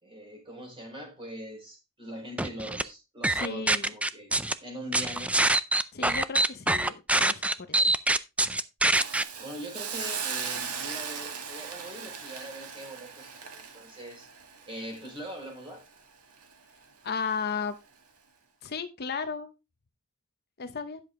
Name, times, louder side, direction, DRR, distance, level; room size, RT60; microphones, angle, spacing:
voice 1, 0.0-4.3 4.6-5.3 9.4-14.3 14.7-15.8, equal, 25° right, 4.6 m, -42 dB
sound 1, 2.4-2.8 3.2-4.5 4.9-9.2, right 2 dB, 5° right, 0.4 m, -24 dB
voice 2, 3.3-3.9 5.9-7.9 17.0-17.7 18.6-19.5 20.6-21.0, left 5 dB, 45° left, 0.8 m, -34 dB
Hiss, 8.9-16.0 16.4-16.5, right 6 dB, 85° right, 1.9 m, -38 dB
10.5 x 6.9 x 3.7 m
head